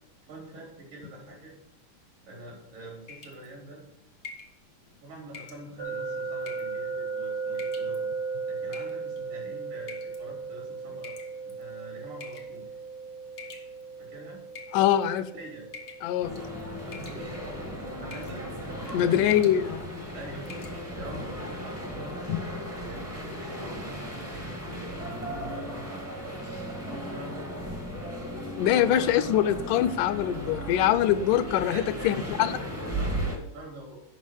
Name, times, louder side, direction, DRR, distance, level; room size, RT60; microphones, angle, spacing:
voice 1, 0.2-1.5 2.2-3.8 5.0-8.1 8.5-11.2 11.4-12.7 14.0-14.4 15.3-15.7 16.8-17.4 18.0-19.2 20.1-22.3 22.7-26.4 26.8-27.6 31.5-34.0, right 2 dB, 85° right, -1 dB, 5.0 m, -45 dB
sound 1, 3.1-3.5 4.2-4.5 5.3-5.6 6.4-6.8 7.5-8.0 8.7-9.2 9.9-10.2 11.0-11.6 12.2-12.6 13.4-14.0 14.5-15.2 15.7-16.1 16.3-16.6 16.9-17.5 18.1-18.4 18.7-18.9 19.2-19.6 20.0-20.1 20.4-20.8, left 5 dB, 50° left, 0.8 m, -45 dB
sound 2, 5.8-18.7, right 4 dB, 60° right, 0.8 m, -37 dB
voice 2, 14.7-15.3 16.0-16.3 18.9-19.8 22.3-22.4 28.6-32.5, left 11 dB, 85° left, 13 dB, 2.1 m, -23 dB
sound 3, 16.2-33.4, equal, 20° right, 0.4 m, -36 dB
9.3 x 5.7 x 6.3 m, 0.84 s
omnidirectional pair, 3.7 m